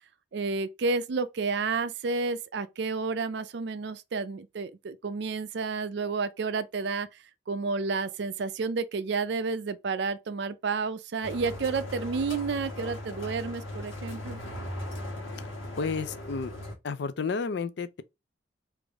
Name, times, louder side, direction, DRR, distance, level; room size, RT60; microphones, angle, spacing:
voice 1, 0.3-7.1 7.5-14.4, right 4 dB, 60° right, 0.4 m, -30 dB
sound 1, 11.2-16.7, left 1 dB, 85° left, 1.2 m, -38 dB
voice 2, 15.8-16.5 16.8-18.0, left 4 dB, 60° left, 0.4 m, -31 dB
3.5 x 2.5 x 3.4 m
head